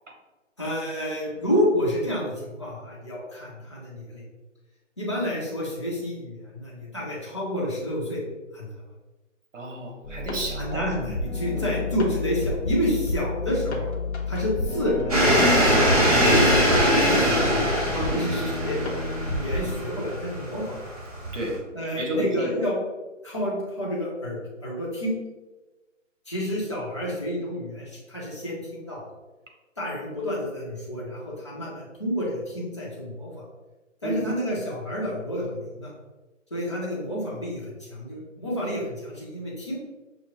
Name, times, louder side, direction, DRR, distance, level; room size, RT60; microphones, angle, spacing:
voice 1, 0.6-4.2 5.0-8.2 8.5-8.7 10.6-14.0 14.3-15.8 16.1-17.3 17.9-18.8 19.2-20.8 21.7-22.8 23.2-25.1 26.3-29.0 29.8-33.4 34.0-35.9 36.5-39.8, equal, 25° left, -6 dB, 0.7 m, -29 dB
voice 2, 9.5-10.8 11.5-11.7 18.0-18.2 21.3-21.6 21.9-22.7 34.0-34.3, right 1 dB, 70° right, 2 dB, 1.2 m, -31 dB
sound 1, 10.0-19.8, left 2 dB, 60° left, 0.8 m, -31 dB
sound 2, 15.1-21.6, equal, 30° right, 0.7 m, -22 dB
6.0 x 2.1 x 3.0 m, 1.2 s
hypercardioid pair, 170°, 38 cm